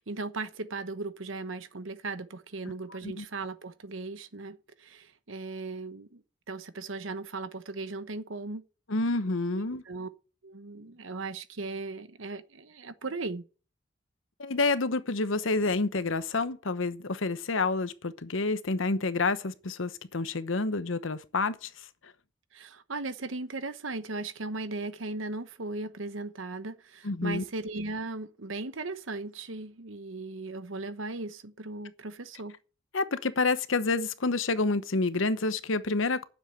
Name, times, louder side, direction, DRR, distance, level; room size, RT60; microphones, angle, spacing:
voice 1, 0.0-8.6 9.6-10.1 10.4-13.4 22.5-32.6, right 3 dB, 75° right, 1.1 m, -37 dB
voice 2, 8.9-9.8 14.4-21.7 27.0-27.4 32.9-36.2, left 3 dB, 80° left, 1.0 m, -28 dB
9.6 x 7.4 x 8.6 m
head